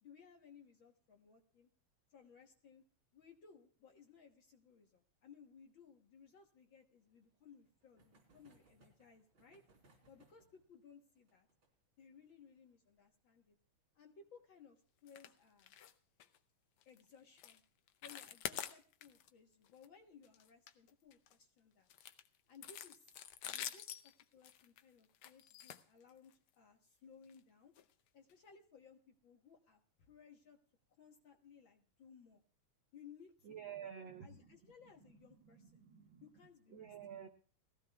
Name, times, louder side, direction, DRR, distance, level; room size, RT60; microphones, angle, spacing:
voice 1, 0.0-1.7 2.1-2.8 3.1-9.6 10.1-11.5 12.0-13.6 13.9-15.7 16.8-17.6 18.0-21.9 22.5-27.7 28.1-30.6 30.9-32.4 32.9-33.9 34.2-35.9 36.2-37.0, left 6 dB, 55° left, 3 dB, 1.5 m, -62 dB
sound 1, 6.9-16.2 16.4-16.5 16.7-16.8 17.1-17.2 18.6-18.9 19.6-20.0, right 2 dB, 40° right, 4.2 m, -73 dB
sound 2, 15.1-15.3 15.6-15.9 16.2-16.4 16.8-17.0 17.4-17.6 17.9-19.3 19.6-19.9 20.2-21.3 21.9-26.5 27.2-27.4 27.8-27.9 28.3-28.4, left 10 dB, 80° left, 1.2 m, -48 dB
voice 2, 33.5-34.3 35.7-36.2 36.7-37.3, right 8 dB, 85° right, 6 dB, 1.0 m, -49 dB
21.0 x 15.5 x 2.3 m, 0.42 s
omnidirectional pair, 3.4 m